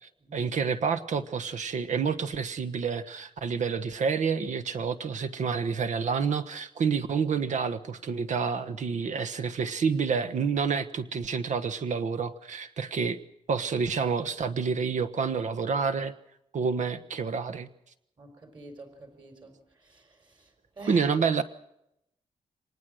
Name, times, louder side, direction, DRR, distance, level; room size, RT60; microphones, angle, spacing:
voice 1, 0.0-13.2 13.5-16.1 16.5-17.7 20.9-21.4, right 5 dB, 70° right, 12 dB, 1.3 m, -28 dB
voice 2, 18.2-19.6 19.9-20.0 20.8-21.1, right 1 dB, 35° right, 6 dB, 4.6 m, -46 dB
24.5 x 19.0 x 6.4 m, 0.80 s
wide cardioid pair, 175°, 13 cm